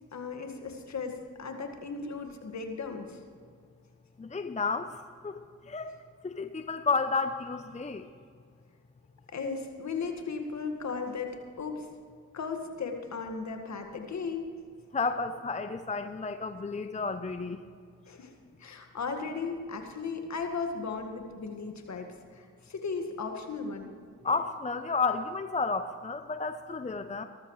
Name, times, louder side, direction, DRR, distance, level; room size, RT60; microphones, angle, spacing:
voice 1, 0.1-3.2 9.3-11.9 12.3-14.5 18.1-18.3 18.6-23.9, left 4 dB, 55° left, 5 dB, 1.9 m, -36 dB
voice 2, 4.2-4.9 5.2-5.4 5.7-5.9 6.2-8.1 14.9-17.6 24.2-27.2, left 4 dB, 20° left, 9 dB, 0.7 m, -31 dB
19.0 x 13.5 x 3.3 m, 2.1 s
supercardioid pair, 50°, 34 cm